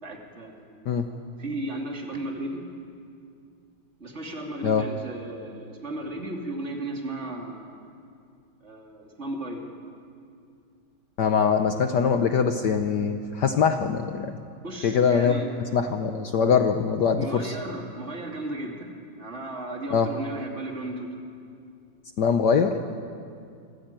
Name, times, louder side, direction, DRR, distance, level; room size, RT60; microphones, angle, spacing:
voice 1, 0.0-2.6 4.0-7.9 8.6-9.7 14.6-15.5 17.2-18.9 19.2-21.2, right 1 dB, 35° right, 1 dB, 2.9 m, -35 dB
voice 2, 11.2-14.4 14.8-15.4 15.7-17.5 19.9-20.1 22.2-22.8, left 6 dB, 60° left, 6 dB, 1.4 m, -23 dB
25.5 x 15.0 x 9.0 m, 2.4 s
omnidirectional pair, 2.3 m